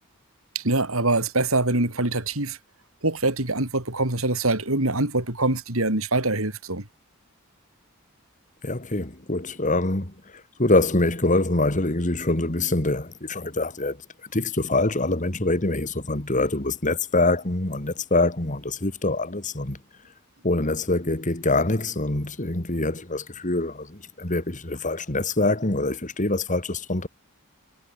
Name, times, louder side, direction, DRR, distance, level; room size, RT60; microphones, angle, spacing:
voice 1, 0.5-2.6 3.0-6.8, right 2 dB, 80° right, 4.5 m, -24 dB
voice 2, 8.6-14.0 14.3-19.8 20.4-27.1, left 2 dB, 35° left, 2.5 m, -24 dB
head